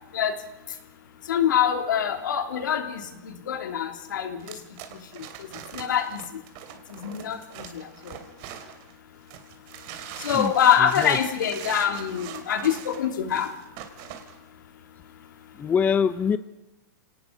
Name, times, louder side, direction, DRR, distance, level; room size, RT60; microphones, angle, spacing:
voice 1, 1.3-4.4 5.7-6.2 6.9-7.4 7.7-7.8 10.2-13.5, left 8 dB, 90° left, 6 dB, 3.1 m, -24 dB
sound 1, 4.4-8.9 9.3-14.3, right 10 dB, 45° right, 3.0 m, -41 dB
voice 2, 10.8-11.2 15.6-16.4, left 7 dB, 15° left, 14 dB, 0.7 m, -24 dB
27.0 x 18.5 x 5.2 m, 0.94 s
supercardioid pair, 150°, 10 cm